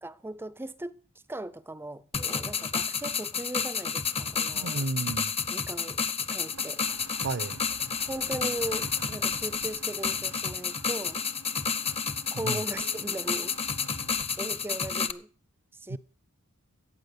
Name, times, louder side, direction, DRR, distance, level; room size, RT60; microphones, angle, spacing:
voice 1, 0.0-1.0 1.3-4.9 5.5-6.0 6.3-6.8 8.1-11.3 12.3-13.5 14.4-15.3 15.7-16.0, right 1 dB, 10° right, 0.5 m, -38 dB
sound 1, 2.1-15.1, left 6 dB, 25° left, 0.8 m, -30 dB
voice 2, 4.5-5.3 7.2-7.6 12.4-12.6 15.9-16.0, right 3 dB, 55° right, 0.7 m, -32 dB
sound 2, 6.5-14.2, right 4 dB, 75° right, 0.9 m, -49 dB
15.0 x 8.5 x 6.7 m
head